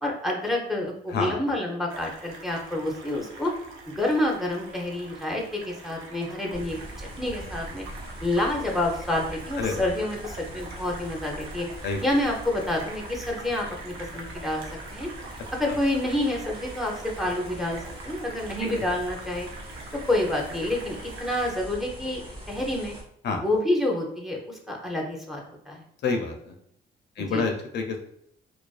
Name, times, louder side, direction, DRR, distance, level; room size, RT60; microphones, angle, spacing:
voice 1, 0.0-3.5 4.0-7.9 8.2-11.7 12.0-14.6 14.9-15.1 15.5-17.8 18.0-19.5 19.9-22.2 22.5-22.9 23.4-25.8 27.3-27.4, left 1 dB, ahead, 0 dB, 0.5 m, -28 dB
sound 1, 1.9-21.6, right 3 dB, 90° right, 0.5 m, -44 dB
sound 2, 6.5-23.0, right 1 dB, 25° right, 0.9 m, -42 dB
voice 2, 9.6-9.9 11.8-12.0 18.8-18.9 23.2-23.4 26.0-26.5 27.2-28.0, left 4 dB, 60° left, 4 dB, 0.4 m, -28 dB
2.4 x 2.3 x 2.3 m, 0.72 s
cardioid pair, 90°, 20 cm